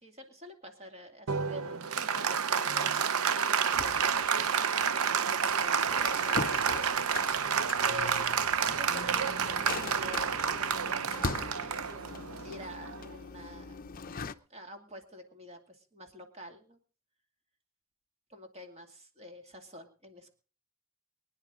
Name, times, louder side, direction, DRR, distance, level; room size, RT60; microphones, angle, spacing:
voice 1, 0.0-4.7 5.3-12.0 12.4-13.9 14.5-16.8 18.3-20.3, left 1 dB, 30° right, 5 dB, 2.4 m, -47 dB
Applause, 1.3-13.2, right 7 dB, 80° right, 0.8 m, -29 dB
sound 1, 3.7-14.3, left 4 dB, 40° left, 0.6 m, -41 dB
24.0 x 10.0 x 3.8 m, 0.38 s
head